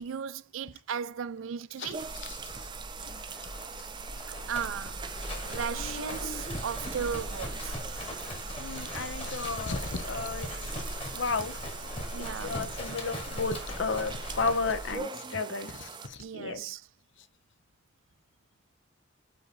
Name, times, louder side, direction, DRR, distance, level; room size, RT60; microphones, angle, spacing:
voice 1, 0.0-2.1 4.1-5.0 5.5-7.8 12.1-12.6 16.2-16.8, right 7 dB, 80° right, 0.4 m, -36 dB
sound 1, 1.9-16.1, right 5 dB, 25° right, 0.5 m, -42 dB
Livestock farm animals working animals, 2.0-15.0, left 1 dB, 30° left, 1.7 m, -39 dB
voice 2, 2.2-2.5 3.0-3.4 5.7-6.4 8.6-10.5 10.7-10.8 11.1-11.6 12.2-16.6, left 4 dB, 65° left, 0.8 m, -34 dB
5.5 x 4.5 x 4.2 m
head